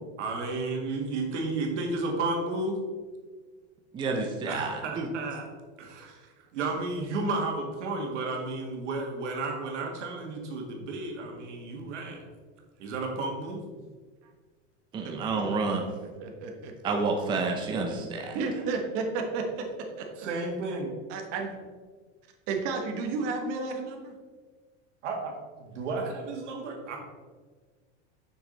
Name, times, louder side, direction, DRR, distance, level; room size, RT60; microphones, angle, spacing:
voice 1, 0.2-2.8 4.5-5.4 5.8-12.3 12.8-13.6 20.2-20.9 25.0-25.3 25.6-27.0, right 3 dB, 85° right, 1 dB, 1.9 m, -32 dB
voice 2, 3.9-5.1 14.9-15.9 16.8-18.4, right 3 dB, 15° right, 2 dB, 0.6 m, -29 dB
voice 3, 15.0-15.4 16.2-16.7 18.3-19.6 20.0-20.1 21.1-21.5 22.5-24.1, right 4 dB, 45° right, 2 dB, 1.3 m, -32 dB
7.0 x 6.1 x 4.0 m, 1.5 s
supercardioid pair, 155°, 35 cm